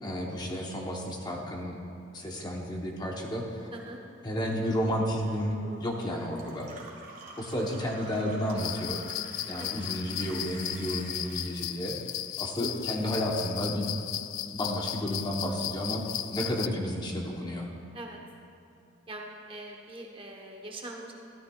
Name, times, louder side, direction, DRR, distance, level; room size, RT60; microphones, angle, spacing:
voice 1, 0.0-1.8 2.1-3.6 4.2-6.7 7.4-9.0 9.5-12.0 12.4-13.9 14.5-16.0 16.3-17.7, equal, 20° left, -1 dB, 0.8 m, -32 dB
Gurgling / Water tap faucet / Sink (filling or washing), 3.1-12.6 12.9-13.8, right 3 dB, 45° right, 1.8 m, -49 dB
voice 2, 3.7-4.0 9.6-9.8 12.6-12.8 17.9-18.2 19.1-21.1, right 1 dB, 25° right, 1 dB, 1.0 m, -42 dB
sound 1, 8.6-16.7, left 13 dB, 85° left, 0.3 m, -36 dB
13.5 x 12.5 x 2.3 m, 2.6 s
head